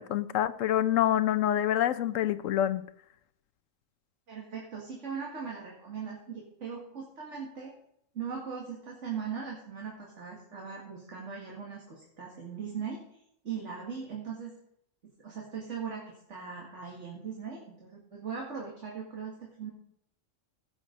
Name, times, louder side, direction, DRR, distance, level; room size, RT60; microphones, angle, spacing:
voice 1, 0.0-2.8, left 11 dB, 80° left, 1.0 m, -26 dB
voice 2, 4.3-7.7 8.1-13.0 13.4-14.5 15.2-19.7, right 6 dB, 65° right, 2.4 m, -39 dB
16.5 x 6.8 x 5.2 m
omnidirectional pair, 1.3 m